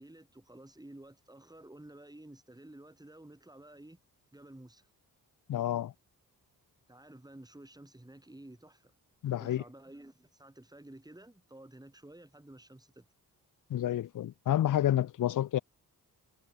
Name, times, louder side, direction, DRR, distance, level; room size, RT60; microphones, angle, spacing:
voice 1, 0.0-4.0 4.3-4.9 6.9-8.9 9.4-13.1, right 1 dB, 10° right, 5.8 m, -52 dB
voice 2, 5.5-5.9 9.2-9.6 13.7-15.6, left 12 dB, 60° left, 0.6 m, -29 dB
cardioid pair, 80°, 36 cm